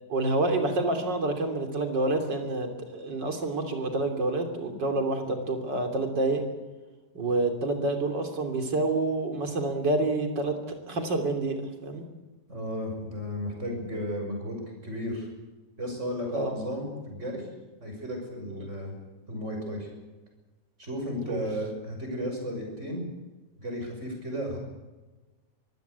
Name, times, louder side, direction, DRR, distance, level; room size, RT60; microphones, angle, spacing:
voice 1, 0.1-6.4 7.1-12.0 16.3-16.5 18.5-18.6 21.3-21.5, right 2 dB, 85° right, 5 dB, 3.8 m, -28 dB
voice 2, 12.5-15.3 15.8-17.5 17.8-18.9 19.3-19.9 20.8-23.0 23.6-24.6, equal, 40° right, 2 dB, 6.5 m, -34 dB
24.0 x 15.5 x 8.3 m, 1.2 s
omnidirectional pair, 1.9 m